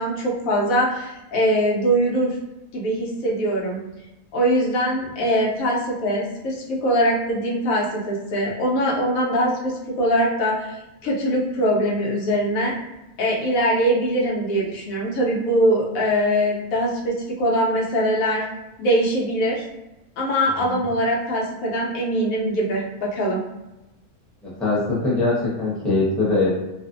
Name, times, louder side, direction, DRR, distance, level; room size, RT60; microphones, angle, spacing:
voice 1, 0.0-2.4 2.7-3.8 4.3-10.8 11.0-12.7 13.2-18.4 18.8-19.6 20.2-23.4, equal, 80° left, -3 dB, 1.1 m, -22 dB
voice 2, 24.4-26.5, left 3 dB, ahead, -9 dB, 0.6 m, -22 dB
2.5 x 2.4 x 2.4 m, 0.97 s
omnidirectional pair, 1.5 m